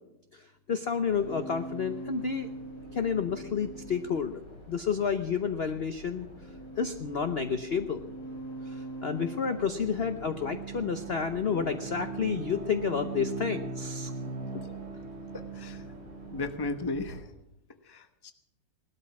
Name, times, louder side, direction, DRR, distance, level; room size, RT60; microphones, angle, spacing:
voice 1, 0.3-2.5 2.9-4.4 4.7-6.3 6.8-8.0 8.6-14.1, left 6 dB, 65° left, 9 dB, 0.6 m, -30 dB
sound 1, 1.0-17.2, right 1 dB, 80° left, 8.9 m, -43 dB
Bowed string instrument, 8.9-16.6, right 6 dB, 35° right, 1.5 m, -41 dB
voice 2, 15.3-15.8 16.3-17.3 17.8-18.3, left 2 dB, 20° left, 9 dB, 0.6 m, -35 dB
18.5 x 12.5 x 6.0 m, 0.84 s
omnidirectional pair, 2.2 m